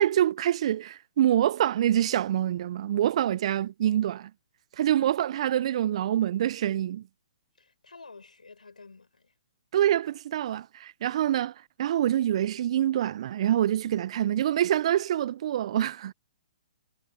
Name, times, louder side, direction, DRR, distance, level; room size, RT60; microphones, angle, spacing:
voice 1, 0.0-4.3 4.8-7.0 9.7-11.5 11.8-16.1, right 11 dB, 50° right, 0.4 m, -25 dB
voice 2, 7.6-9.3, left 4 dB, 85° left, 5.8 m, -50 dB
hypercardioid pair, 130°, 4 cm